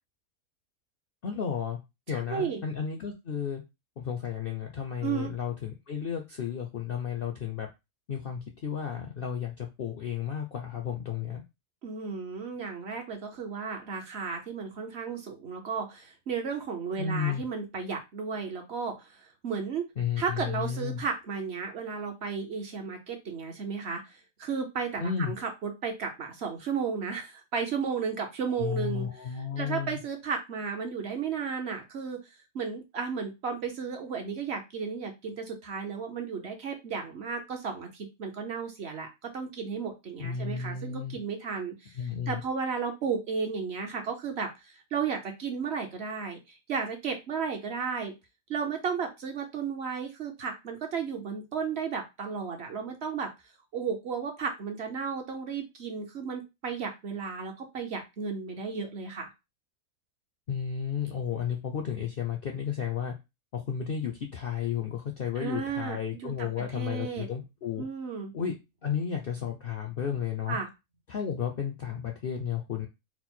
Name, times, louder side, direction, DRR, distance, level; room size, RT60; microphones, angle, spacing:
voice 1, 1.2-1.8 2.1-3.6 4.0-7.7 8.1-11.4 17.0-17.4 20.0-21.0 25.0-25.3 28.5-30.0 40.2-41.2 42.0-42.4 60.5-63.1 63.5-67.9 68.3-68.6 68.8-70.6 71.1-72.9, left 7 dB, 60° left, 3 dB, 0.6 m, -33 dB
voice 2, 2.1-2.6 5.0-5.3 11.8-19.9 20.2-32.2 32.5-48.1 48.5-53.3 53.7-59.3 65.4-66.0 66.2-67.3 67.8-68.3 70.5-70.7, right 5 dB, 55° right, 3 dB, 0.9 m, -34 dB
4.4 x 2.0 x 4.2 m, 0.24 s
omnidirectional pair, 1.6 m